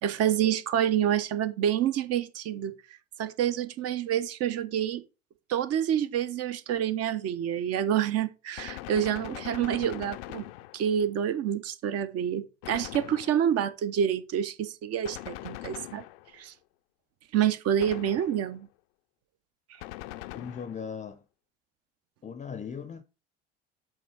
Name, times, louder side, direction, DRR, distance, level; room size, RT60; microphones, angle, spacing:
voice 1, 0.0-2.7 3.2-5.0 5.5-10.4 10.7-16.0 16.3-16.5 17.3-18.7, right 9 dB, 50° right, 0.9 m, -28 dB
Gunshot gunfire, 8.6-11.1 12.6-13.7 15.0-16.5 17.8-18.6 19.8-20.9, left 17 dB, 65° left, 0.5 m, -42 dB
voice 2, 20.2-21.2 22.2-23.0, left 6 dB, 25° left, 0.6 m, -38 dB
8.0 x 3.7 x 4.7 m
hypercardioid pair, 65°, 32 cm